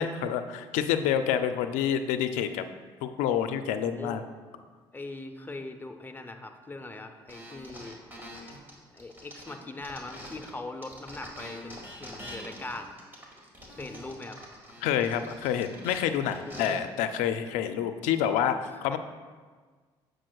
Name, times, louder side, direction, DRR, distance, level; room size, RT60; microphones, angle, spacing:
voice 1, 0.0-2.6 3.0-4.2 14.8-19.0, left 9 dB, 80° left, 9 dB, 0.4 m, -28 dB
voice 2, 3.9-4.2 4.9-8.0 8.9-12.9 13.8-14.4 16.4-16.8, left 2 dB, 15° left, 5 dB, 0.6 m, -41 dB
sound 1, 7.3-10.5 10.8-16.7, equal, 15° right, 1.8 m, -45 dB
7.4 x 6.4 x 2.3 m, 1.5 s
hypercardioid pair, 60°, 12 cm